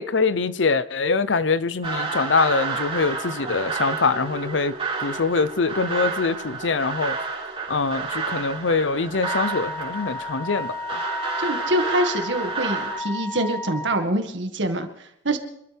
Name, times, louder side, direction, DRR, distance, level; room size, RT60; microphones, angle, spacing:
voice 1, 0.0-4.7 5.0-7.1 7.7-11.0, left 4 dB, 80° left, 0.7 m, -24 dB
sound 1, 1.8-13.0, right 4 dB, 35° right, 3.9 m, -30 dB
Wind instrument woodwind instrument, 9.2-14.1, left 2 dB, 15° left, 0.8 m, -33 dB
voice 2, 11.4-15.4, right 1 dB, 75° right, 2.0 m, -25 dB
26.0 x 13.5 x 3.5 m
head